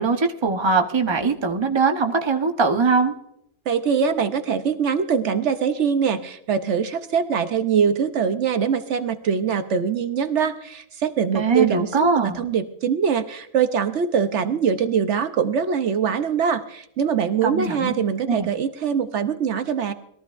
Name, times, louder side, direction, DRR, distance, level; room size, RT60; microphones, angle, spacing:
voice 1, 0.0-3.1 11.3-12.5 17.4-17.9 18.3-18.5, right 4 dB, 25° right, 4 dB, 0.9 m, -21 dB
voice 2, 3.7-19.9, right 7 dB, 70° right, 10 dB, 1.0 m, -23 dB
21.5 x 13.5 x 2.5 m, 0.77 s
omnidirectional pair, 1.3 m